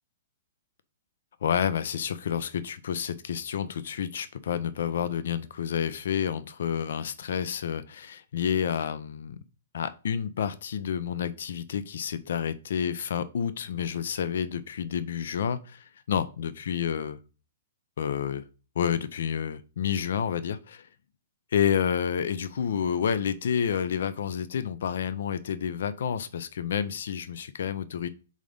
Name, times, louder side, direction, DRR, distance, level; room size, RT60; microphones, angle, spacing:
voice 1, 1.4-9.4 9.7-17.2 18.0-18.4 18.8-20.9 21.5-28.1, left 8 dB, 70° left, 14 dB, 0.6 m, -29 dB
5.1 x 4.0 x 5.1 m, 0.34 s
hypercardioid pair, 140°, 0 cm